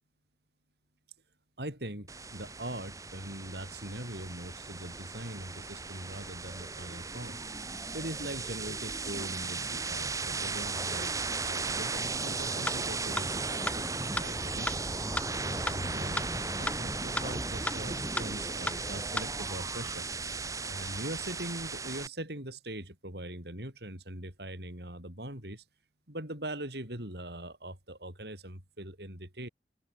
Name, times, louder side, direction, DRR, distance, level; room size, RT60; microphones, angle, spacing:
voice 1, 1.6-7.4 7.9-14.8 15.4-16.3 16.6-20.1 20.7-25.6 26.1-29.5, right 1 dB, 65° right, 7.9 m, -41 dB
sound 1, 2.1-22.1, right 3 dB, 20° right, 2.9 m, -36 dB
sound 2, 12.7-12.8 13.2-13.3 13.7-13.8 14.2-14.3 14.7-14.8 15.2-15.3 15.7-15.8 16.2-16.3 16.7-16.8 17.2-17.3 17.7-17.8 18.2-18.3 18.7-18.8 19.2-19.3, left 2 dB, 5° left, 1.0 m, -31 dB
open air
head